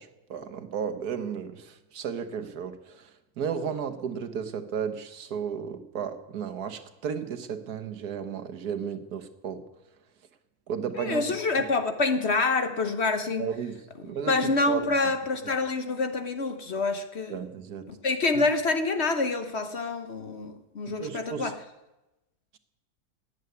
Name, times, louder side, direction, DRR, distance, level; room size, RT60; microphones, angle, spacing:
voice 1, 0.0-9.6 10.7-11.4 13.4-14.9 17.3-17.9 20.9-21.5, right 7 dB, 70° right, 7 dB, 1.6 m, -34 dB
voice 2, 11.0-13.5 14.3-17.4 17.9-21.5, left 3 dB, 50° left, 8 dB, 1.1 m, -27 dB
17.5 x 8.1 x 9.5 m, 1.0 s
omnidirectional pair, 1.7 m